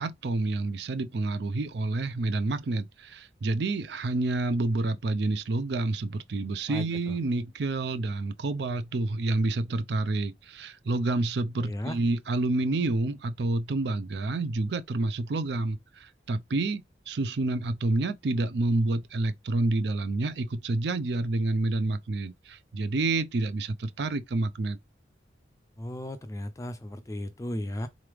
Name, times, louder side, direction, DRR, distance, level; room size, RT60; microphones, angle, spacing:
voice 1, 0.0-24.8, right 2 dB, 65° right, 0.4 m, -28 dB
voice 2, 6.7-7.1 11.6-12.0 25.8-27.9, left 1 dB, 15° left, 0.3 m, -35 dB
3.8 x 3.2 x 3.3 m
head